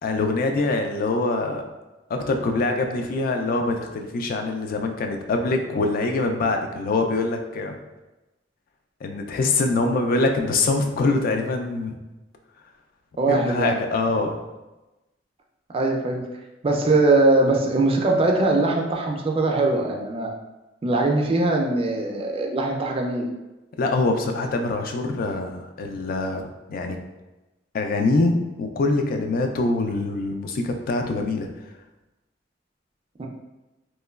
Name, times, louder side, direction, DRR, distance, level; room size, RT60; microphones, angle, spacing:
voice 1, 0.0-1.6 2.1-7.8 9.0-11.9 13.3-14.4 23.8-27.0 27.7-31.5, left 3 dB, 50° left, 4 dB, 0.3 m, -24 dB
voice 2, 13.2-13.8 15.7-16.2 16.6-20.3 20.8-23.3 33.2-33.3, right 2 dB, 30° right, 1 dB, 0.4 m, -21 dB
3.0 x 2.2 x 2.3 m, 1.0 s
head